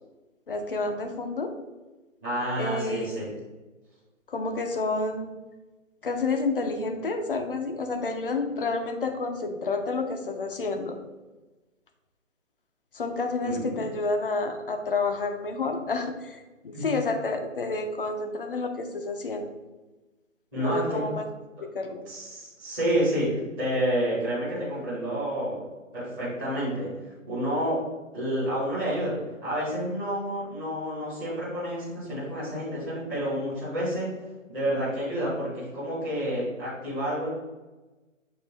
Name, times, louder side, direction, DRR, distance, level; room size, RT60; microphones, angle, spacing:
voice 1, 0.5-1.5 2.6-3.3 4.3-5.4 6.0-11.0 12.9-19.5 20.5-21.2 21.6-22.0, left 3 dB, 45° left, 6 dB, 0.5 m, -29 dB
voice 2, 2.2-3.2 13.4-13.8 16.7-16.8 20.5-21.0 22.0-25.6 25.9-27.8 28.1-34.1 34.5-37.3, equal, 5° right, -16 dB, 0.8 m, -29 dB
6.8 x 2.5 x 3.1 m, 1.2 s
hypercardioid pair, 160°, 40 cm